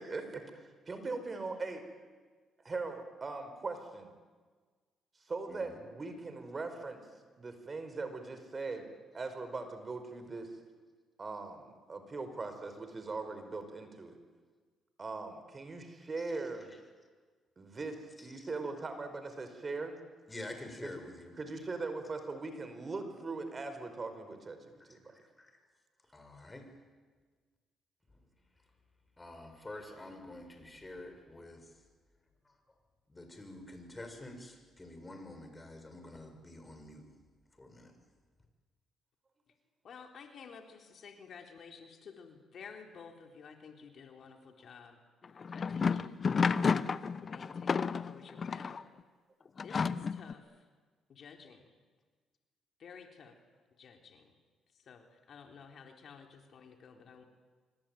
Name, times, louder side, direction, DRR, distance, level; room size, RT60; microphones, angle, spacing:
voice 1, 0.9-1.8 2.6-4.1 5.3-7.0 7.4-8.9 9.1-10.5 11.2-14.2 15.0-16.7 17.6-19.9 20.8-20.9 21.4-25.2, right 3 dB, 35° right, 5.2 m, -40 dB
voice 2, 5.5-5.8 16.7-16.8 18.2-18.5 20.3-21.4 24.9-25.0 25.4-25.6 26.1-26.8 28.1-28.2 29.2-31.7 33.1-37.1 37.6-38.0, left 1 dB, 20° left, 6.8 m, -48 dB
voice 3, 39.8-45.0 45.3-46.5 47.3-48.9 49.6-50.7 51.1-51.7 52.8-53.4 53.8-54.4 54.7-57.2, left 6 dB, 60° left, 3.9 m, -53 dB
sound 1, 45.2-48.8 49.6-50.3, left 5 dB, 45° left, 1.0 m, -31 dB
26.0 x 24.5 x 9.3 m
supercardioid pair, 70°, 0 cm